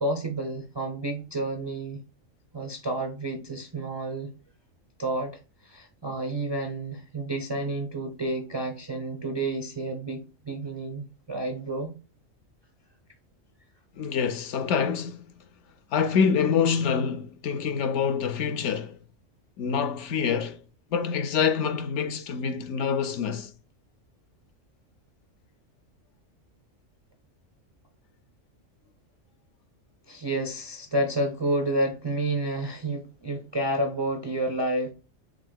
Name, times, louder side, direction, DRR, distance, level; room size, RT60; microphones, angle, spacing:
voice 1, 0.0-2.0 2.5-4.3 5.0-11.9 30.1-34.9, right 1 dB, 40° right, 0.3 m, -30 dB
voice 2, 14.0-15.3 15.9-19.0 19.6-20.6 20.9-23.5, left 6 dB, 70° left, 0.8 m, -26 dB
4.9 x 3.5 x 2.2 m
omnidirectional pair, 1.4 m